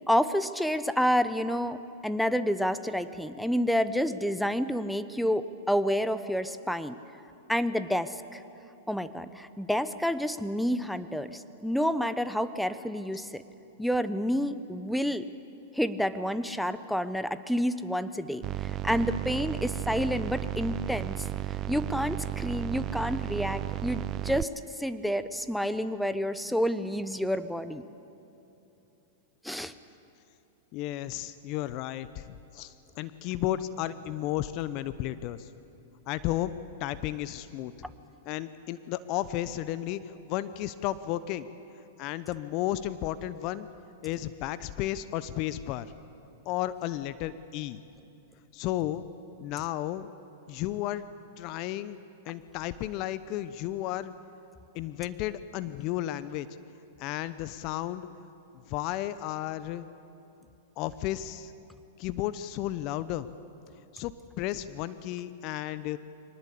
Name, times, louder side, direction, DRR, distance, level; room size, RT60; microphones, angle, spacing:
voice 1, 0.1-1.8 2.0-6.9 7.5-8.4 8.9-13.4 13.8-15.3 15.7-21.3 21.7-24.5 24.8-27.8 29.4-29.7, equal, ahead, 13 dB, 0.9 m, -29 dB
sound 1, 18.4-24.4, right 13 dB, 35° right, 0.5 m, -34 dB
voice 2, 30.7-35.5 36.1-37.7 38.2-41.5 42.0-43.7 44.0-45.9 46.5-47.8 48.5-49.0 49.4-50.1 50.5-51.0 51.4-52.0 52.2-54.1 54.7-56.5 57.0-58.1 58.7-59.9 60.8-61.5 62.0-63.3 63.9-64.1 64.4-66.0, left 13 dB, 45° left, 14 dB, 0.8 m, -33 dB
23.5 x 19.0 x 8.6 m, 2.9 s
hypercardioid pair, 115°, 0 cm